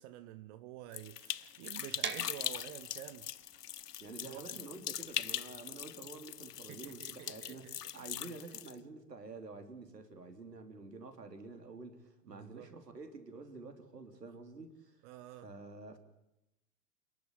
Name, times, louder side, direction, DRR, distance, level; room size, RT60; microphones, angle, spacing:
voice 1, 0.0-3.3 4.2-4.6 6.7-8.1 12.2-12.7 15.0-15.5, right 13 dB, 45° right, 1.3 m, -50 dB
sound 1, 0.9-8.7, left 10 dB, 80° left, 0.8 m, -41 dB
sound 2, 2.0-7.8, right 7 dB, 25° right, 2.1 m, -46 dB
voice 2, 4.0-7.7 7.9-15.1 15.4-16.0, right 3 dB, 85° right, 3.5 m, -49 dB
29.0 x 11.5 x 9.9 m
figure-of-eight pair, 95°, 47 cm